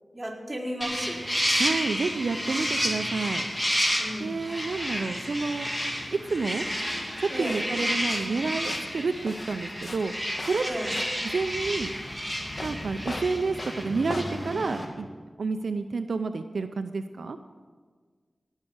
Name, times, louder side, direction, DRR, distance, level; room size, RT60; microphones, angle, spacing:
voice 1, 0.1-1.2 4.0-4.4 7.3-7.6 10.6-10.9, equal, 20° right, -5 dB, 4.6 m, -34 dB
sound 1, 0.8-14.8, equal, 15° left, 2.7 m, -31 dB
voice 2, 1.6-3.5 4.2-5.7 6.3-6.6 7.2-10.1 10.4-10.6 11.3-11.9 12.6-15.1 15.4-17.4, right 4 dB, 85° right, 8 dB, 0.5 m, -29 dB
sound 2, 7.3-14.4, left 2 dB, 55° left, 1.3 m, -41 dB
18.0 x 6.5 x 8.0 m, 1.5 s
cardioid pair, 50°, 0 cm